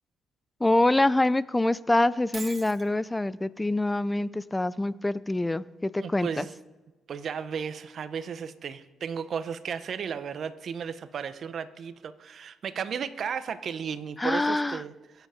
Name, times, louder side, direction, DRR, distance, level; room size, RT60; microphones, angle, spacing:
voice 1, 0.6-6.5 14.2-14.8, left 2 dB, 15° left, 18 dB, 0.5 m, -25 dB
Shatter, 2.3-2.9, right 4 dB, 30° right, 1.7 m, -40 dB
voice 2, 6.0-6.5 7.1-15.3, right 7 dB, 55° right, 12 dB, 0.9 m, -34 dB
23.0 x 8.2 x 5.1 m, 1.2 s
cardioid pair, 90°, 0 cm